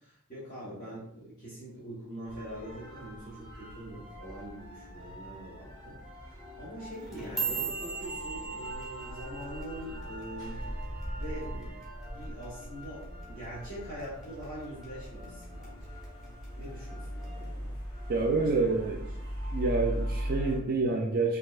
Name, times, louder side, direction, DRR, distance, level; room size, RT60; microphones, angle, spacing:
voice 1, 0.0-6.0 6.5-10.6 11.1-11.8 12.1-13.0 13.3-16.0 16.6-17.8 18.1-18.9, right 1 dB, 40° left, -9 dB, 1.1 m, -43 dB
sound 1, 2.2-20.6, equal, 20° left, 1.3 m, -40 dB
sound 2, 6.9-11.3 11.6-12.0 12.4-12.8 13.2-13.4 14.0-14.4 14.8-15.6 16.0-16.4 17.2-17.3, right 6 dB, ahead, 1.0 m, -38 dB
voice 2, 18.1-19.0 19.5-21.4, right 3 dB, 40° right, 0 dB, 0.3 m, -28 dB
4.4 x 2.7 x 2.4 m, 0.73 s
head